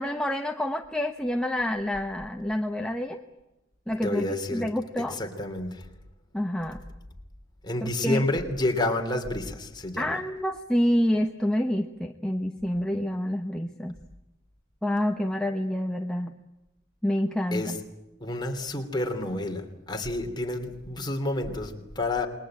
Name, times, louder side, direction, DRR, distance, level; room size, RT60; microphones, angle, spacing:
voice 1, 0.0-3.2 3.9-5.2 6.3-6.8 7.8-8.3 10.0-14.0 14.8-16.3 17.0-17.8, left 1 dB, 5° left, 3 dB, 1.0 m, -28 dB
voice 2, 4.0-4.7 5.2-5.8 7.6-10.1 17.5-17.7 18.2-19.6 19.9-22.3, left 1 dB, 20° left, 4 dB, 3.0 m, -29 dB
28.5 x 21.0 x 8.8 m, 0.98 s
head